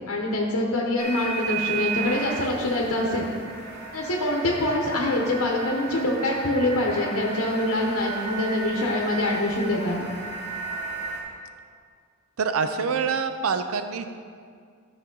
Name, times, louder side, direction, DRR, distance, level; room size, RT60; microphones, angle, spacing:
voice 1, 0.1-3.3 3.9-10.1, left 1 dB, 85° left, -1 dB, 1.0 m, -25 dB
sound 1, 1.0-11.2, right 4 dB, 55° right, 2.1 m, -34 dB
voice 2, 12.4-14.0, right 5 dB, 80° right, 9 dB, 0.5 m, -25 dB
12.5 x 6.2 x 3.8 m, 2.1 s
head